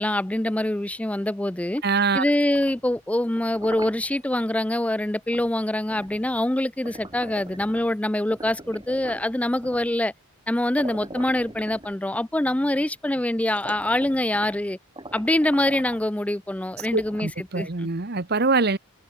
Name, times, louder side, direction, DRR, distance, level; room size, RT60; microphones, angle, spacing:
voice 1, 0.0-1.8 2.1-10.1 10.5-14.8 15.1-17.9, left 1 dB, 5° left, 0.3 m, -25 dB
voice 2, 1.8-2.2 16.9-18.8, right 4 dB, 45° right, 1.1 m, -23 dB
sound 1, 2.3-4.4 5.3-5.5 5.9-8.0 8.3-9.9 10.5-10.6 10.8-12.3 12.9-13.0 13.4-14.6 15.0-16.1 16.7-17.5, right 2 dB, 20° right, 4.8 m, -42 dB
head